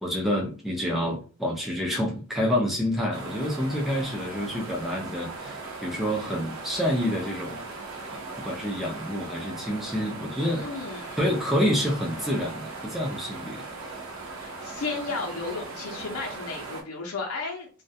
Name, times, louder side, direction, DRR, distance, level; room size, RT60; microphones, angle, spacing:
voice 1, 0.0-7.6 8.4-10.7 11.2-13.6, equal, ahead, 0.5 m, -28 dB
sound 1, 3.1-16.8, right 3 dB, 70° right, 0.6 m, -38 dB
voice 2, 10.6-11.2 14.4-17.7, left 3 dB, 85° left, 0.6 m, -34 dB
2.3 x 2.1 x 2.6 m
head